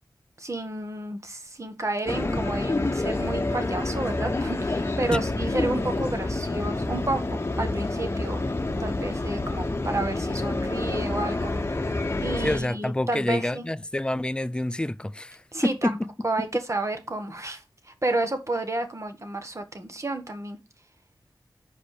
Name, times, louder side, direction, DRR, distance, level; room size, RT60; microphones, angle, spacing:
voice 1, 0.4-8.4 8.8-11.5 12.2-13.6 15.5-16.0 16.2-20.6, right 2 dB, 40° right, 1.6 m, -31 dB
sound 1, 2.1-12.6, left 2 dB, 30° left, 1.0 m, -28 dB
voice 2, 12.4-16.1, left 1 dB, 10° left, 0.4 m, -28 dB
5.6 x 5.1 x 6.6 m
wide cardioid pair, 70°, 8 cm